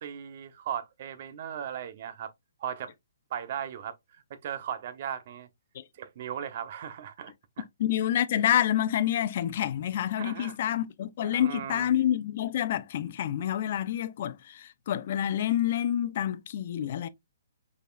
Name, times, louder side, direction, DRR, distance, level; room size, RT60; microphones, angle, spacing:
voice 1, 0.0-2.3 2.6-2.9 3.3-3.9 4.3-5.5 5.9-7.6 10.2-10.6 11.2-11.9, right 9 dB, 45° right, 0.8 m, -37 dB
voice 2, 7.8-17.1, left 11 dB, 45° left, 0.6 m, -28 dB
5.3 x 4.1 x 2.4 m
hypercardioid pair, 160°, 0 cm